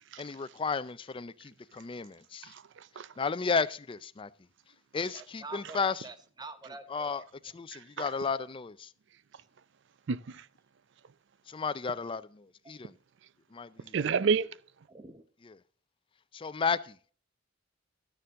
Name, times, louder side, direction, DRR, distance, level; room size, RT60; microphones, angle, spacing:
voice 1, 0.2-2.5 3.2-4.3 4.9-6.1 6.9-8.9 11.5-13.0 13.5-14.0 15.4-15.6 16.3-17.0, left 5 dB, 25° left, 0.4 m, -33 dB
voice 2, 2.5-3.1 7.7-8.1 10.1-10.5 13.9-14.6, right 5 dB, 65° right, 0.5 m, -30 dB
voice 3, 5.1-7.1 12.6-12.7 14.9-15.2, right 3 dB, 20° right, 0.8 m, -46 dB
12.5 x 6.8 x 3.6 m
head